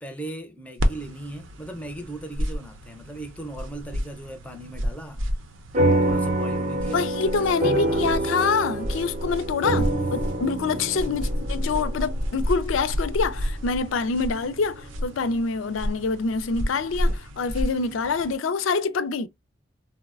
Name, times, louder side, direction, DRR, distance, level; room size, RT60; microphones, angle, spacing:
voice 1, 0.0-5.2 6.1-8.1 9.9-10.0 11.0-11.3, right 1 dB, 5° left, 0.4 m, -38 dB
sound 1, 0.8-18.3, equal, 90° right, 0.6 m, -31 dB
sound 2, 5.7-14.5, right 1 dB, 40° right, 0.6 m, -27 dB
voice 2, 6.9-19.3, left 4 dB, 90° left, 0.4 m, -26 dB
3.9 x 2.1 x 2.3 m
head